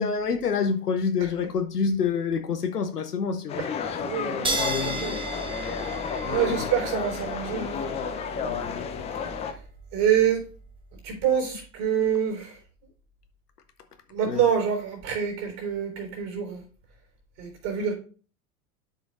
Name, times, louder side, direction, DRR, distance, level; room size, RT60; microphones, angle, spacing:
voice 1, 0.0-3.7 4.5-5.0 6.2-6.6 8.4-8.7 14.2-14.4, left 5 dB, 80° left, 0.7 m, -27 dB
sound 1, 3.5-9.5, left 6 dB, 15° left, 0.4 m, -31 dB
voice 2, 4.0-4.5 4.8-5.2 6.2-7.8 9.4-9.5 9.9-10.4 11.0-12.6 14.1-16.6 17.4-17.9, right 8 dB, 40° right, 3.5 m, -26 dB
sound 2, 4.4-11.4, right 3 dB, 10° right, 0.9 m, -36 dB
11.5 x 5.0 x 2.4 m
figure-of-eight pair, 85°, 46 cm